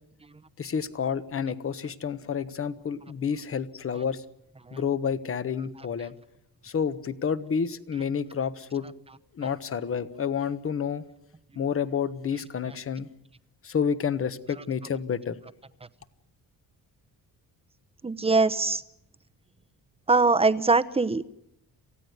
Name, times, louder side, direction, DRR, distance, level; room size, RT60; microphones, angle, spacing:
voice 1, 0.6-4.2 4.7-6.1 6.6-8.9 9.3-11.0 11.5-13.1 13.6-15.4, left 7 dB, 35° left, 13 dB, 1.2 m, -29 dB
voice 2, 18.0-18.8 20.1-21.3, right 3 dB, 15° right, 11 dB, 0.9 m, -22 dB
28.0 x 16.0 x 9.6 m, 0.84 s
cardioid pair, 155°, 38 cm